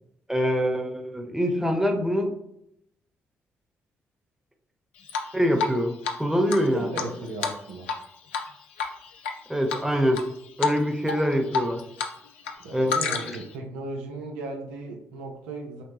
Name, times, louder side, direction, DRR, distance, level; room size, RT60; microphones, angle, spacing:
voice 1, 0.3-2.3 5.3-7.0 9.5-10.2 10.6-11.8 12.7-13.4, equal, 5° right, 3 dB, 1.0 m, -25 dB
Drip, 5.1-5.8 6.0-6.1 6.5-8.0 8.3-8.5 8.8-9.3 9.7-10.2 10.6-10.8 11.1-12.1 12.4-13.5, left 5 dB, 90° left, 0.4 m, -29 dB
voice 2, 6.7-7.9 12.6-15.8, right 2 dB, 85° right, 1 dB, 0.6 m, -36 dB
6.2 x 2.1 x 3.3 m, 0.78 s
hypercardioid pair, 40°, 7 cm